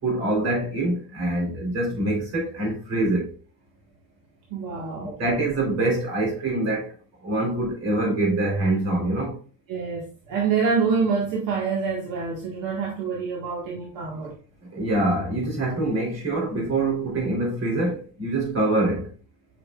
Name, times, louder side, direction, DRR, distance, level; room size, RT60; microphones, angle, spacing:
voice 1, 0.0-3.3 5.2-6.9 7.2-9.4 14.7-19.1, right 2 dB, 50° right, 3.8 m, -25 dB
voice 2, 4.5-5.2 9.7-14.4, right 5 dB, 75° right, 1.8 m, -26 dB
8.3 x 5.9 x 2.5 m
cardioid pair, 175°, 34 cm